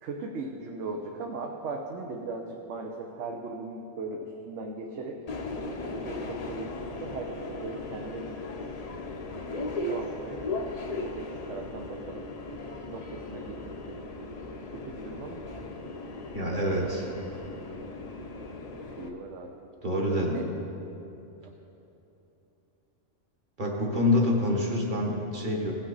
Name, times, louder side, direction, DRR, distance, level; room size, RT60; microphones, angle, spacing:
voice 1, 0.0-5.2 5.8-8.4 9.6-12.2 12.9-14.0 14.7-15.4 16.4-16.8 19.0-19.5 20.2-20.4, right 3 dB, 70° right, 1 dB, 1.0 m, -39 dB
Subway metro underground, 5.3-19.1, left 2 dB, 40° left, 0.6 m, -37 dB
voice 2, 16.3-17.1 19.8-20.4 23.6-25.7, left 1 dB, 40° right, -2 dB, 1.5 m, -26 dB
17.0 x 5.9 x 4.0 m, 2.9 s
omnidirectional pair, 1.3 m